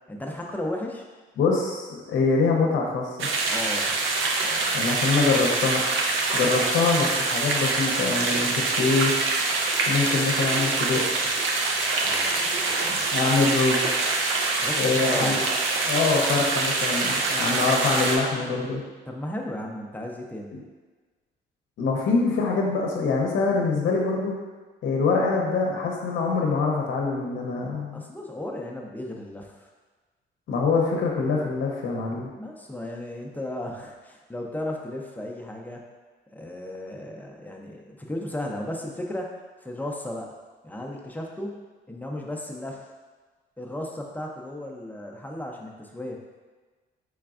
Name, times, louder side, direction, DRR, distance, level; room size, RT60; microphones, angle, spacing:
voice 1, 0.1-1.1 3.5-3.9 4.4-4.8 12.0-13.1 14.6-15.4 19.1-20.5 27.9-29.7 32.4-35.8 36.3-39.4 39.6-40.3 40.6-41.6 41.9-42.9 43.6-46.2, left 1 dB, 10° left, 0 dB, 0.5 m, -35 dB
voice 2, 1.4-3.3 4.7-5.8 6.3-9.1 9.9-11.0 12.9-13.9 14.8-15.3 15.9-18.8 21.8-24.3 24.8-28.0 30.5-32.3, left 4 dB, 70° left, -1 dB, 0.7 m, -24 dB
sound 1, 3.2-18.2, right 3 dB, 80° right, 0.5 m, -25 dB
3.9 x 3.4 x 2.4 m, 1.3 s
cardioid pair, 90°, 20 cm